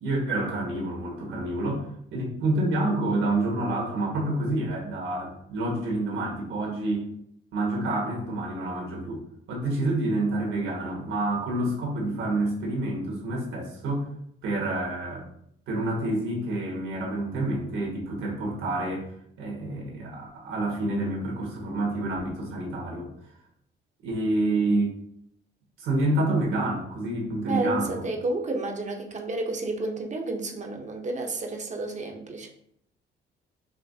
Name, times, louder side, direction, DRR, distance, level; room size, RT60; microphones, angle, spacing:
voice 1, 0.0-7.1 7.5-9.2 9.5-14.1 14.4-15.3 15.7-19.1 19.4-23.1 24.0-24.9 25.8-28.0, right 2 dB, 85° right, -2 dB, 1.7 m, -28 dB
voice 2, 27.5-32.5, right 2 dB, 35° right, 3 dB, 0.8 m, -31 dB
5.6 x 2.8 x 2.7 m, 0.70 s
cardioid pair, 90°, 20 cm